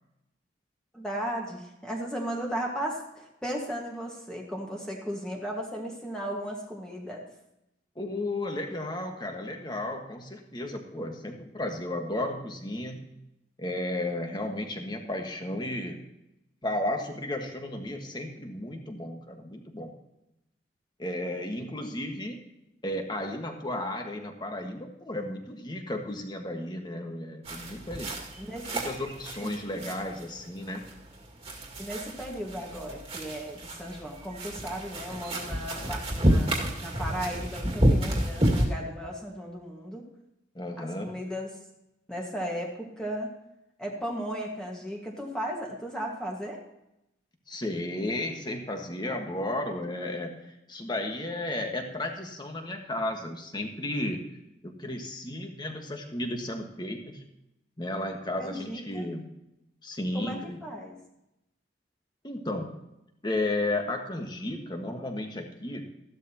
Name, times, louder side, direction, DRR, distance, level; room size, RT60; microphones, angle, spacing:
voice 1, 0.9-7.3 28.4-28.7 29.4-29.5 31.8-40.1 40.8-41.5 42.1-43.3 43.8-46.6 58.4-59.1 60.1-61.0, equal, 5° left, -1 dB, 1.7 m, -36 dB
voice 2, 7.9-13.1 13.6-16.0 16.6-19.9 21.0-22.4 22.8-28.2 28.7-30.8 40.5-41.2 47.5-54.2 54.8-57.2 57.8-59.3 59.8-60.6 62.2-62.8 63.2-65.9, left 1 dB, 25° left, 3 dB, 1.5 m, -33 dB
sound 1, 27.4-38.7, right 1 dB, 30° right, 2.1 m, -30 dB
14.0 x 12.0 x 2.9 m, 0.87 s
head